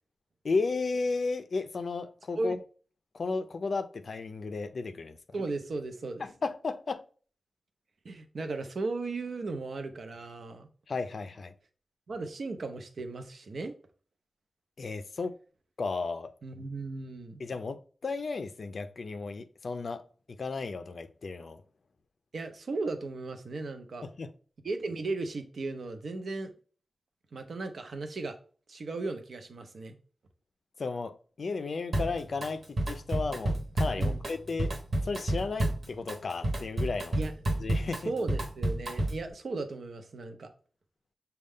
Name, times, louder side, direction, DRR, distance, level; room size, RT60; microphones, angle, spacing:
voice 1, 0.4-2.6 3.1-5.2 6.2-7.0 10.9-11.5 14.8-15.3 15.8-16.3 17.4-20.0 20.4-21.6 24.0-24.3 30.8-34.7 35.0-37.2 37.6-38.1, left 4 dB, 55° left, 0.4 m, -34 dB
voice 2, 5.3-6.3 8.0-10.7 12.1-13.7 16.4-17.4 22.3-24.1 24.6-26.5 27.3-28.4 28.7-30.0 34.0-34.2 37.2-37.3 38.0-40.5, right 3 dB, 65° right, 0.6 m, -36 dB
Drum kit, 31.9-32.5 32.8-39.3, right 1 dB, 45° right, 1.0 m, -30 dB
6.3 x 2.3 x 3.5 m
wide cardioid pair, 140°, 0 cm